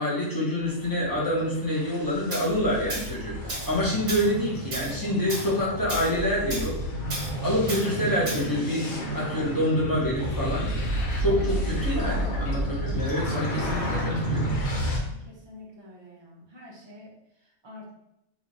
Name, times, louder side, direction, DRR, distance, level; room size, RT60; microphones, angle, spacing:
voice 1, 0.0-6.7 7.4-8.9 9.1-10.7 11.2-14.5, left 1 dB, 15° left, -6 dB, 0.8 m, -27 dB
sound 1, 0.6-15.0, equal, 80° left, 1.4 m, -31 dB
Tools, 2.3-2.5 2.9-3.1 3.5-3.8 4.1-4.3 4.7-4.9 5.3-5.5 5.9-6.1 6.5-6.7 7.1-7.3 7.7-7.9 8.3-8.5, right 1 dB, 55° right, 1.3 m, -33 dB
voice 2, 15.0-17.9, left 2 dB, 25° right, -3 dB, 0.6 m, -48 dB
3.0 x 2.5 x 3.9 m, 0.82 s
omnidirectional pair, 1.5 m